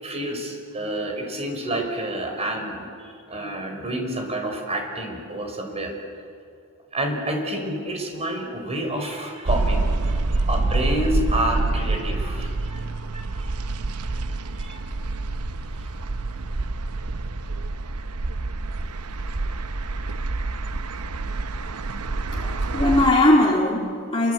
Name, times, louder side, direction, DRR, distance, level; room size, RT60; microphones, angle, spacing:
voice 1, 0.0-6.0 6.9-13.5 13.8-14.9 15.8-15.9, right 1 dB, 30° right, 3 dB, 5.3 m, -29 dB
sound 1, 9.4-23.1, right 2 dB, 85° right, 0.9 m, -27 dB
voice 2, 22.3-24.3, left 1 dB, 25° left, -2 dB, 2.2 m, -20 dB
27.5 x 24.5 x 8.4 m, 2.4 s
head